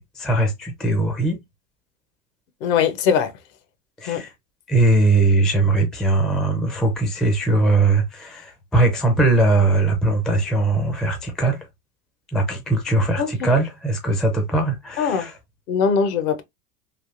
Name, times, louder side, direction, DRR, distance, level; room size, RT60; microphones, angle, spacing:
voice 1, 0.0-1.4 4.0-4.3 4.7-11.7 12.3-15.4, right 2 dB, ahead, 0.4 m, -20 dB
voice 2, 2.6-3.3 4.1-4.2 13.2-13.3 15.0-15.3 15.7-16.4, left 6 dB, 55° left, 0.8 m, -20 dB
3.5 x 2.4 x 2.4 m
hypercardioid pair, 100°, 46 cm